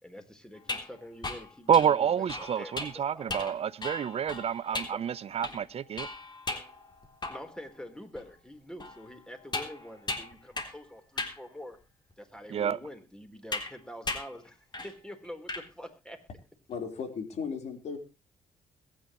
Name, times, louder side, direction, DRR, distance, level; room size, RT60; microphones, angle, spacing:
voice 1, 0.0-3.6 4.7-5.0 7.3-11.8 12.2-16.2, equal, 5° left, 4.3 m, -46 dB
sound 1, 0.6-7.7 8.1-8.2 8.8-10.9 11.2-11.4 12.1-12.2 13.5-13.7 14.1-14.4 14.7-15.0 15.2-15.7, left 3 dB, 35° left, 3.6 m, -37 dB
voice 2, 1.7-6.1 12.5-12.8, right 8 dB, 55° right, 0.8 m, -28 dB
voice 3, 16.7-18.0, left 6 dB, 65° left, 4.5 m, -36 dB
22.0 x 10.5 x 3.2 m
supercardioid pair, 65°, 12 cm